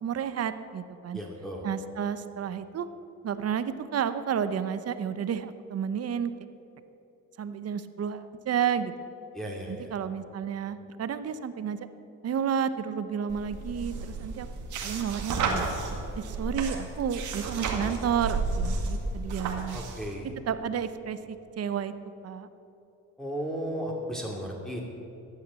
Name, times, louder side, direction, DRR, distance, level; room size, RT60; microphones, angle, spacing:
voice 1, 0.0-1.2 1.6-2.9 3.2-6.3 7.4-8.9 9.7-11.8 12.2-14.5 14.8-15.7 16.1-19.8 20.5-21.9 22.2-22.5, right 8 dB, 55° right, 12 dB, 0.9 m, -31 dB
voice 2, 1.1-1.7 9.3-9.9 19.7-20.3 23.2-24.8, equal, ahead, -3 dB, 2.5 m, -35 dB
sound 1, 13.3-20.1, right 3 dB, 80° right, 2.2 m, -32 dB
14.5 x 9.4 x 8.3 m, 2.9 s
cardioid pair, 90°, 30 cm